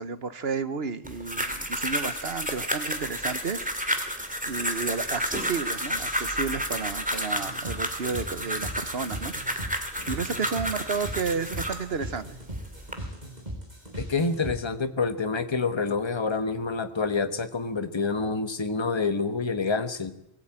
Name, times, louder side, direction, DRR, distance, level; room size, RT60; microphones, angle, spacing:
voice 1, 0.0-3.7 4.5-9.3 10.1-12.4, right 5 dB, 50° right, 13 dB, 1.2 m, -32 dB
sound 1, 1.0-11.9 12.5-12.9, equal, 5° right, 2.3 m, -31 dB
sound 2, 7.4-14.6, right 1 dB, 30° right, 6.9 m, -38 dB
voice 2, 14.0-20.1, left 4 dB, 20° left, 9 dB, 1.3 m, -27 dB
22.5 x 16.5 x 8.9 m, 0.82 s
omnidirectional pair, 1.3 m